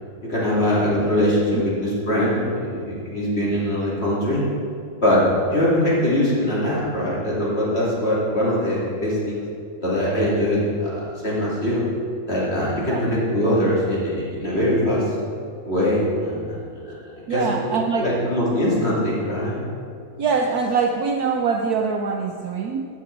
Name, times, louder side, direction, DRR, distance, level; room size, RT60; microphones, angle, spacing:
voice 1, 0.2-4.4 5.0-9.4 9.8-11.8 12.3-15.1 15.6-16.6 17.3-17.4 18.0-19.6, left 1 dB, 30° left, -7 dB, 2.9 m, -22 dB
voice 2, 17.3-18.1 20.2-22.9, right 5 dB, 85° right, 3 dB, 0.8 m, -23 dB
15.5 x 6.1 x 4.6 m, 2.4 s
omnidirectional pair, 2.3 m